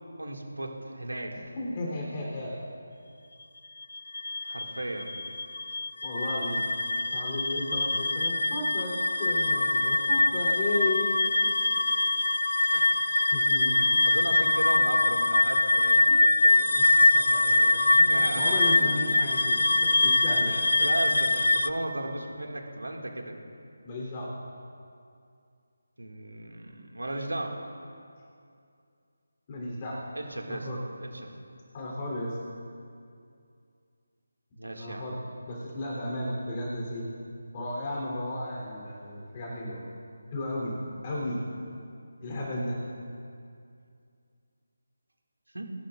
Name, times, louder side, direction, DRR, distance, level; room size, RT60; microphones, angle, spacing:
voice 1, 0.2-1.4 4.4-5.1 12.7-12.9 14.1-16.7 17.4-18.6 19.1-19.4 20.5-23.4 26.0-27.6 30.1-30.7 31.0-31.3 34.6-35.1 45.5-45.7, right 1 dB, 85° right, 1 dB, 2.1 m, -36 dB
voice 2, 1.6-2.6 6.0-6.6 7.1-11.1 11.4-11.5 13.3-14.1 16.1-16.2 16.7-16.8 17.1-20.6 23.8-24.4 29.5-30.0 30.5-30.8 31.7-32.4 34.8-35.2 35.5-37.1 37.5-39.8 40.3-40.8 41.0-41.4 42.2-42.8, left 1 dB, 30° left, -4 dB, 3.4 m, -34 dB
sound 1, 3.8-21.7, left 2 dB, 70° left, 0.4 m, -24 dB
21.5 x 12.0 x 2.5 m, 2.4 s
figure-of-eight pair, 160°, 0 cm